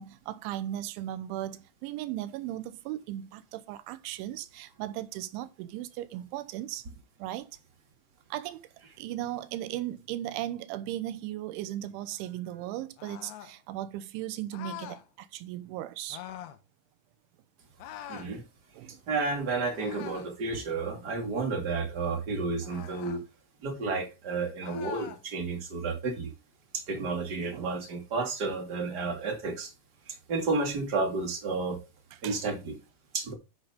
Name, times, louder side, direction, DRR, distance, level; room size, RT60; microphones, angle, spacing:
voice 1, 0.0-6.8 7.2-7.5 8.3-8.6 9.0-16.2 18.7-19.0 26.9-27.1 27.5-27.7 32.2-32.4, right 13 dB, 80° right, 3.1 m, -37 dB
sound 1, 13.0-13.6 14.5-15.0 16.1-16.6 17.8-18.3 19.7-20.4 22.6-23.2 24.6-25.2, left 12 dB, 70° left, 2.9 m, -43 dB
voice 2, 18.1-18.4 19.1-23.2 23.6-26.3 26.7-29.7 30.1-31.8 32.2-32.8 33.1-33.3, right 3 dB, 35° right, 1.8 m, -31 dB
10.5 x 6.4 x 3.6 m
omnidirectional pair, 5.6 m